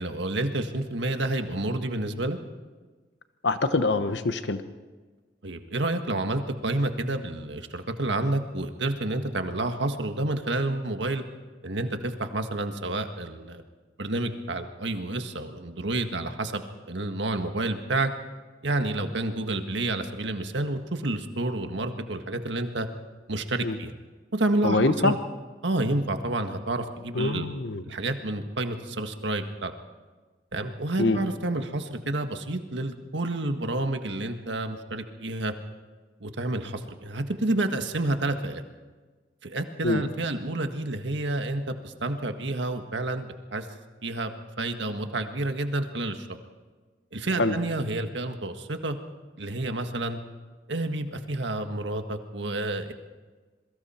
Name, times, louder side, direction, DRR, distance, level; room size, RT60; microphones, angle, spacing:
voice 1, 0.0-2.4 5.4-11.2 11.6-13.6 14.0-18.1 18.6-22.9 23.3-23.9 24.3-24.8 25.0-25.2 25.6-27.5 27.8-29.7 30.5-35.5 36.2-38.6 39.4-43.7 44.0-46.4 47.1-49.0 49.4-50.2 50.7-52.9, right 2 dB, 80° right, 6 dB, 1.6 m, -29 dB
voice 2, 3.4-4.6 23.6-23.8 24.6-25.2 27.1-27.8 31.0-31.2 39.8-40.0 47.4-47.6, left 2 dB, 75° left, 10 dB, 1.1 m, -24 dB
27.0 x 23.0 x 4.4 m, 1.4 s
head